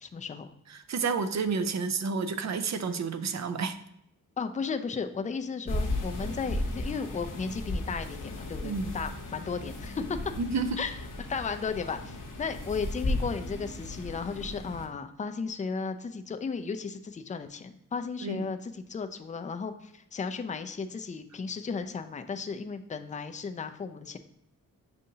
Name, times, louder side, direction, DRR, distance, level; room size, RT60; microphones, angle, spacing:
voice 1, 0.0-0.5 4.4-10.2 10.8-11.0 11.3-24.2, left 5 dB, 20° left, 8 dB, 0.4 m, -35 dB
voice 2, 0.7-3.8 8.6-8.9 10.4-10.8 18.2-18.5, right 5 dB, 50° right, 10 dB, 0.5 m, -30 dB
sound 1, 5.7-14.9, left 1 dB, 60° left, 0.9 m, -35 dB
6.6 x 2.6 x 2.7 m, 0.76 s
cardioid pair, 45°, 36 cm